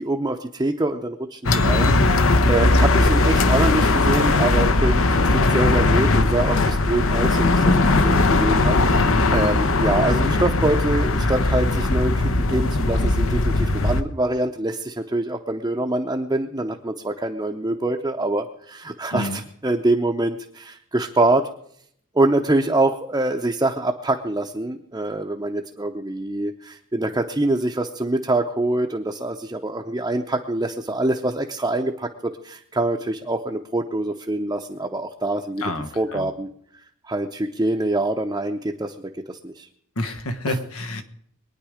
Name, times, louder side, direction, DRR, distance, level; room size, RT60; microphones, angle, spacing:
voice 1, 0.0-9.1 9.3-21.5 22.1-35.6 36.0-36.5 37.0-39.7 40.5-40.6, right 2 dB, 15° right, 1 dB, 0.7 m, -25 dB
sound 1, 1.4-14.0, left 2 dB, 70° left, 0.9 m, -19 dB
voice 2, 19.1-19.4 35.6-36.3 40.0-41.0, left 1 dB, 90° left, 10 dB, 1.4 m, -29 dB
23.0 x 9.6 x 5.0 m, 0.66 s
head